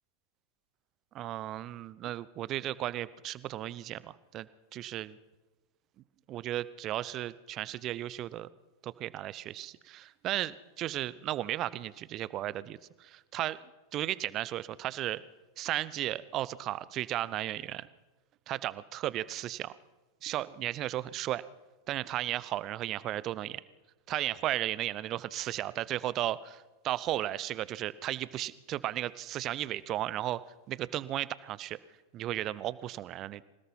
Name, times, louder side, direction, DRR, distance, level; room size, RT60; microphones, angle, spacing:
voice 1, 1.1-5.2 6.3-8.5 8.8-13.6 13.9-15.2 15.6-17.9 18.5-19.7 20.2-21.4 21.9-23.6 24.1-30.4 30.7-31.8 32.1-33.4, right 13 dB, 35° right, 19 dB, 0.8 m, -35 dB
26.5 x 18.0 x 5.6 m, 1.2 s
figure-of-eight pair, 90°, 0 cm